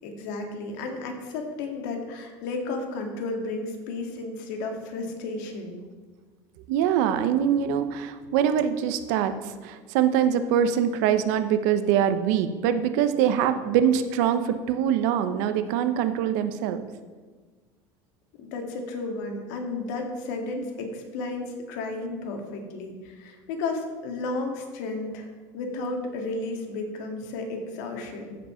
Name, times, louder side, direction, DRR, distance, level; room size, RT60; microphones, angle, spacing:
voice 1, 0.0-5.8 18.4-28.4, left 3 dB, 80° left, 3 dB, 2.1 m, -33 dB
voice 2, 6.7-9.3 9.6-16.9, right 9 dB, 75° right, 10 dB, 0.9 m, -23 dB
14.5 x 5.4 x 5.7 m, 1.4 s
cardioid pair, 155°, 9 cm